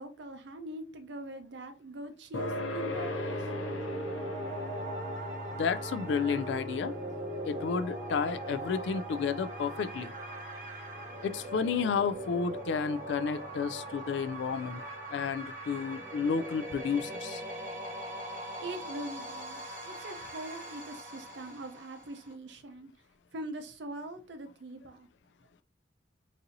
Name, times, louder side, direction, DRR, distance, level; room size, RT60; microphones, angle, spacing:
voice 1, 0.0-3.5 18.6-22.9 23.3-25.1, right 1 dB, 65° right, 0.5 m, -42 dB
sound 1, 2.3-17.2, left 1 dB, 85° left, 0.7 m, -43 dB
sound 2, 2.5-22.3, right 1 dB, 45° right, 0.9 m, -40 dB
voice 2, 5.5-6.9 7.4-10.1 11.2-14.8 15.1-17.4, left 6 dB, 70° left, 0.3 m, -31 dB
4.1 x 2.7 x 2.6 m
head